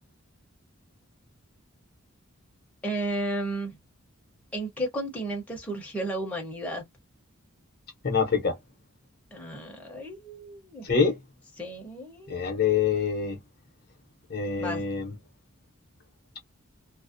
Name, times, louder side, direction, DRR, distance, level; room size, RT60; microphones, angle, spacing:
voice 1, 2.8-3.8 4.5-6.8 9.3-10.9 11.6-12.4 14.6-14.8, right 1 dB, 5° left, 0.7 m, -33 dB
voice 2, 8.0-8.6 10.8-11.2 12.3-13.4 14.3-15.1, left 6 dB, 45° left, 0.6 m, -25 dB
2.4 x 2.0 x 2.5 m
head